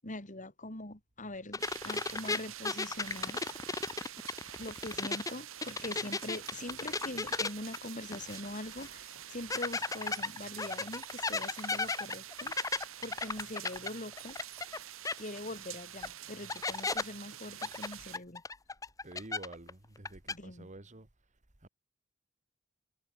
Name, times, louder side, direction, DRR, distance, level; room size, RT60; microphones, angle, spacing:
voice 1, 0.0-3.4 4.6-12.6 13.0-14.4 15.2-18.4 20.3-20.7, left 1 dB, 40° left, 4.6 m, -43 dB
sound 1, 1.5-5.3 5.6-8.5 8.8-8.9 9.5-14.8 15.0-15.1 16.0-16.1 16.5-17.0 17.6-19.7 20.0-20.3, left 3 dB, 15° left, 0.8 m, -35 dB
sound 2, 1.6-18.2, right 12 dB, 75° right, 1.2 m, -47 dB
voice 2, 19.0-21.1 21.6-21.7, right 2 dB, 35° right, 1.8 m, -49 dB
head